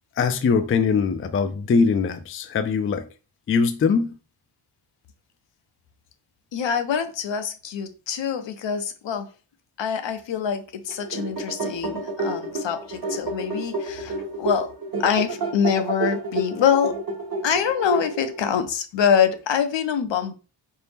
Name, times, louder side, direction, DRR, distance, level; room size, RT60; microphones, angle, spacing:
voice 1, 0.2-3.1 3.5-4.2, left 5 dB, 30° left, 0.3 m, -22 dB
voice 2, 6.5-9.3 9.8-14.7 15.0-17.0 17.4-20.3, left 7 dB, 70° left, 0.6 m, -25 dB
sound 1, 10.9-18.5, right 2 dB, 50° right, 1.0 m, -30 dB
4.4 x 2.0 x 3.4 m
wide cardioid pair, 95°, 46 cm